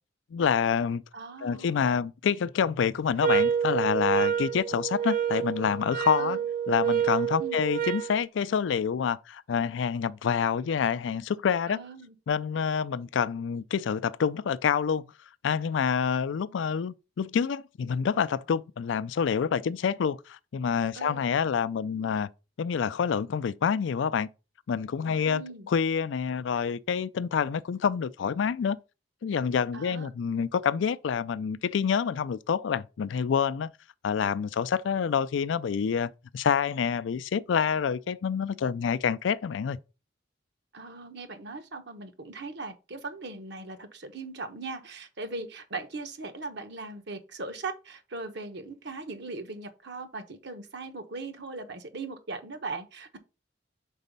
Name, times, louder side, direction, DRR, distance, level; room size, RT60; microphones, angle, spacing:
voice 1, 0.3-1.0 1.4-6.4 6.7-11.8 12.3-15.1 15.4-22.3 22.6-24.3 24.7-25.4 25.7-28.8 29.2-33.7 34.0-39.8, left 7 dB, 75° left, 0.4 m, -27 dB
voice 2, 1.1-1.8 6.2-6.4 7.4-7.6 11.7-12.1 20.9-21.3 25.2-25.7 29.7-30.1 40.7-53.2, right 3 dB, 65° right, 1.0 m, -39 dB
sound 1, 3.2-8.1, right 8 dB, 45° right, 0.4 m, -28 dB
5.4 x 4.0 x 5.3 m
head